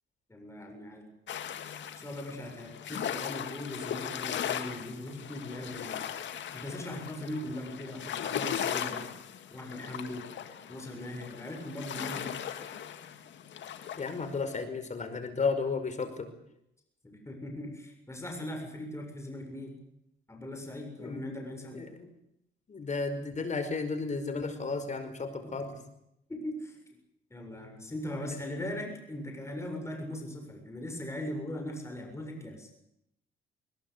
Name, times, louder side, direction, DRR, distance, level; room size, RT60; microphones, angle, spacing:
voice 1, 0.3-1.1 2.0-6.0 6.5-9.1 9.5-10.3 10.7-12.4 17.0-19.8 20.3-21.8 25.4-25.8 26.3-26.8 27.3-32.7, left 1 dB, 15° left, 3 dB, 7.2 m, -39 dB
sound 1, 1.3-14.6, left 9 dB, 65° left, 2.2 m, -38 dB
voice 2, 14.0-16.3 21.0-21.2 21.7-22.1 22.7-25.8, left 4 dB, 35° left, 9 dB, 5.2 m, -33 dB
21.0 x 21.0 x 8.2 m, 0.80 s
cardioid pair, 90°, 20 cm